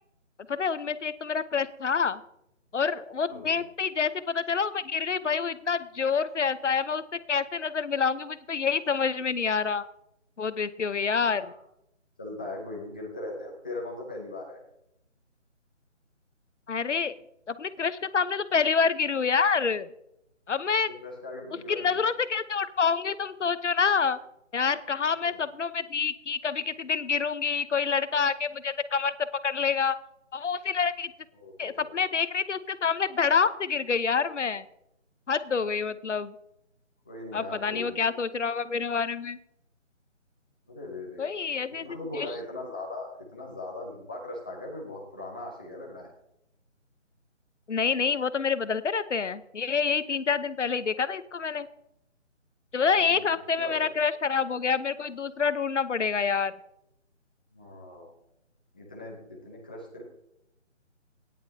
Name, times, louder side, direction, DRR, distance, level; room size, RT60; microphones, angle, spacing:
voice 1, 0.5-2.2 2.7-7.0 7.3-9.8 10.4-11.5 16.7-17.1 17.5-19.9 20.5-20.9 21.7-24.2 24.5-29.1 29.4-30.0 30.3-31.1 31.6-34.6 35.3-36.3 37.3-39.4 41.2-42.0 47.7-51.7 52.7-56.5, left 5 dB, 70° left, 14 dB, 0.9 m, -27 dB
voice 2, 3.3-3.7 11.2-11.5 12.2-14.6 21.0-22.1 25.2-25.4 31.3-31.9 37.0-38.0 40.7-41.3 41.8-46.1 52.9-53.8 57.5-58.2 58.7-60.0, left 2 dB, 5° left, -2 dB, 0.7 m, -39 dB
17.0 x 10.5 x 2.8 m, 0.80 s
figure-of-eight pair, 160°, 37 cm